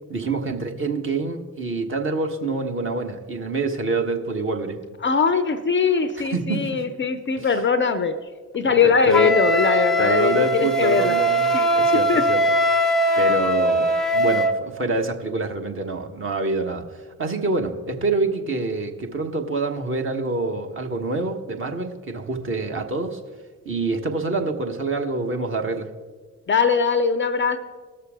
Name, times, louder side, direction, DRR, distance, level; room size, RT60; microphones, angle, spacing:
voice 1, 0.1-4.8 6.2-6.8 7.4-7.6 8.6-9.4 10.0-12.4 12.7-23.2 23.6-25.9, right 3 dB, 30° right, 3 dB, 1.4 m, -26 dB
voice 2, 5.0-8.2 8.5-11.2 11.5-11.7 12.1-12.3 26.5-27.6, left 5 dB, 30° left, 12 dB, 0.6 m, -21 dB
Wind instrument woodwind instrument, 9.1-14.6, equal, ahead, 0.8 m, -20 dB
18.0 x 6.6 x 3.7 m, 1.4 s
figure-of-eight pair, 45°, 41 cm